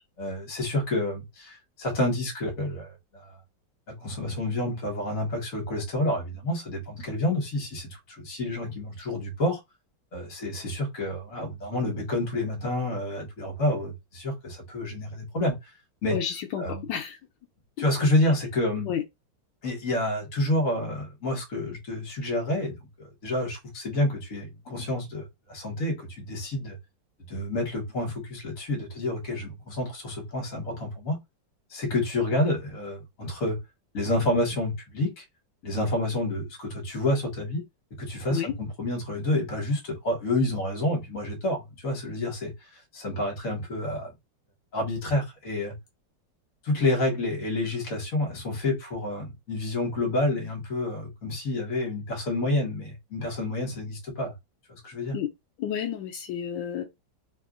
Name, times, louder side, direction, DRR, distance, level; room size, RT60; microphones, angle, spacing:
voice 1, 0.2-3.3 3.9-9.6 10.1-15.7 16.0-16.2 16.6-16.8 17.8-18.9 19.6-26.8 27.3-31.2 31.7-33.6 33.9-35.2 35.6-37.6 38.0-42.5 42.9-44.1 44.7-45.7 46.6-54.3 54.7-55.2, left 1 dB, 50° left, 1.6 m, -29 dB
voice 2, 16.1-17.2 18.9-19.0 38.3-38.5 55.1-55.3 55.6-56.8, left 9 dB, 80° left, 1.2 m, -31 dB
3.5 x 2.4 x 2.4 m
omnidirectional pair, 2.0 m